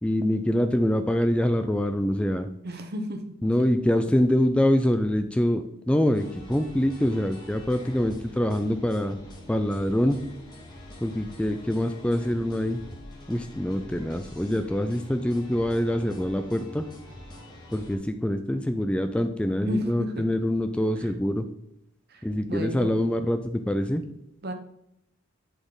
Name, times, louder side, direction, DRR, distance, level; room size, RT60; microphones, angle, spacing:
voice 1, 0.0-2.5 3.4-9.2 9.5-10.2 11.0-12.8 13.3-16.8 17.7-21.5 22.2-24.0, left 1 dB, 5° left, 7 dB, 0.3 m, -25 dB
voice 2, 2.6-3.2 19.6-20.2 21.0-21.1 22.1-22.2 22.5-22.9 24.4-24.5, equal, 50° right, 6 dB, 1.0 m, -32 dB
sound 1, 6.1-18.0, left 1 dB, 20° left, 1.9 m, -45 dB
11.0 x 4.2 x 3.9 m, 0.82 s
head